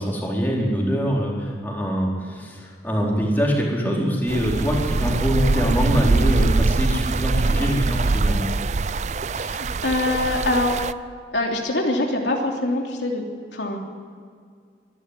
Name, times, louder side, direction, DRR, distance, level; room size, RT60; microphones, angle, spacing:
voice 1, 0.0-8.4, equal, 10° left, -3 dB, 4.2 m, -23 dB
sound 1, 4.3-10.9, right 3 dB, 40° right, 0.4 m, -23 dB
voice 2, 9.4-10.8 11.3-13.2 13.5-13.8, left 2 dB, 80° left, 1 dB, 3.0 m, -24 dB
23.5 x 12.0 x 9.9 m, 2.1 s
head